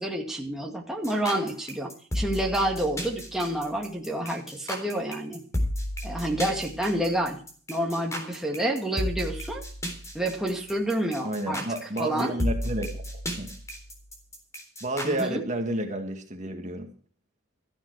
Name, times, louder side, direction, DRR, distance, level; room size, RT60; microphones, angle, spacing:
voice 1, 0.0-5.4 6.0-7.4 7.7-9.6 10.1-11.6 12.0-12.3 15.0-15.4, right 1 dB, ahead, 0 dB, 2.1 m, -29 dB
sound 1, 1.0-15.2, equal, 15° left, 3.7 m, -33 dB
voice 2, 11.2-13.0 13.4-13.5 14.8-16.9, right 1 dB, 35° right, 5 dB, 2.1 m, -30 dB
14.5 x 11.5 x 4.9 m, 0.42 s
head